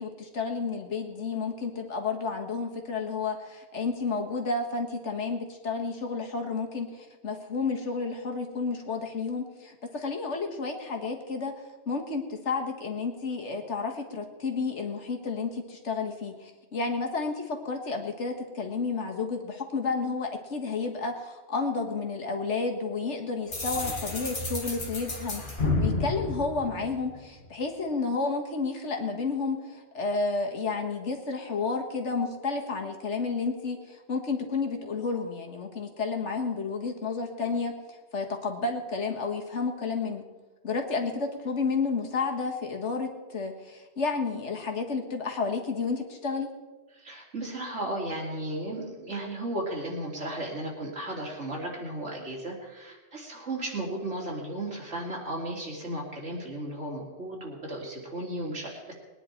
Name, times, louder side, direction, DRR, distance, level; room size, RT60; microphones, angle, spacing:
voice 1, 0.0-11.5 11.9-37.7 38.1-40.2 40.6-46.5, left 4 dB, 80° left, 3 dB, 1.9 m, -31 dB
sound 1, 23.5-27.4, left 3 dB, 45° left, 1.9 m, -31 dB
voice 2, 46.9-58.9, right 1 dB, 85° right, -2 dB, 3.3 m, -35 dB
20.5 x 10.0 x 4.5 m, 1.2 s
omnidirectional pair, 1.2 m